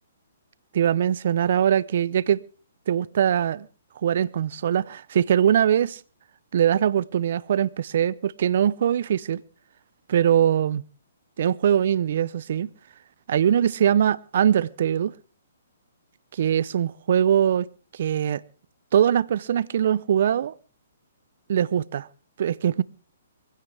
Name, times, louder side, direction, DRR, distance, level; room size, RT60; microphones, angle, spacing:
voice 1, 0.7-2.4 2.9-3.7 4.0-6.0 6.5-9.4 10.1-10.8 11.4-12.7 13.3-15.1 16.4-17.7 17.9-18.4 18.9-20.5 21.5-22.1 22.4-22.8, right 9 dB, 60° right, 0.7 m, -22 dB
22.0 x 16.0 x 3.4 m
hypercardioid pair, 135°, 0 cm